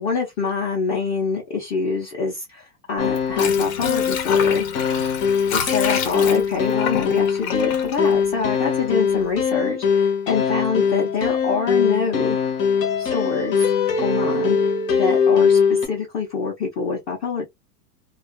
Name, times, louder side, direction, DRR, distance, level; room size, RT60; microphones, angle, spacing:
voice 1, 0.0-4.7 5.5-12.4 13.0-14.6 14.9-17.5, left 5 dB, 30° left, 0.7 m, -26 dB
sound 1, 3.0-15.9, left 6 dB, 80° left, 1.1 m, -21 dB
Water / Sink (filling or washing), 3.0-8.9 9.2-9.3, left 7 dB, 60° left, 0.9 m, -29 dB
2.4 x 2.3 x 2.3 m
supercardioid pair, 140°, 48 cm